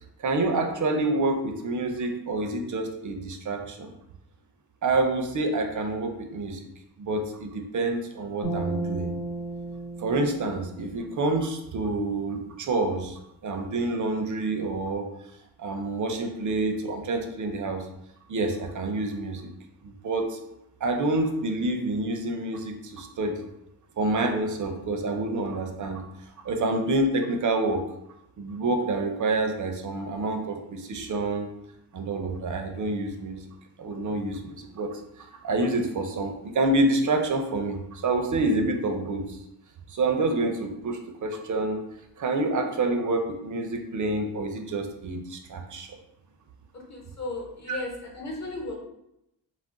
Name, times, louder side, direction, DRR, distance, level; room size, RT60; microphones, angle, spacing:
voice 1, 0.2-3.9 4.8-6.7 7.0-9.1 10.0-15.1 15.6-17.9 18.3-19.5 19.8-20.4 20.8-23.4 24.0-26.0 26.4-27.8 28.4-31.5 31.9-33.4 33.8-39.4 39.9-41.8 42.2-45.9 47.7-47.8, right 2 dB, 45° right, 5 dB, 0.5 m, -27 dB
sound 1, 8.4-11.8, right 3 dB, 90° left, 1.2 m, -34 dB
voice 2, 46.7-48.7, left 2 dB, 40° left, -1 dB, 0.9 m, -35 dB
2.4 x 2.1 x 3.6 m, 0.83 s
cardioid pair, 85°, 42 cm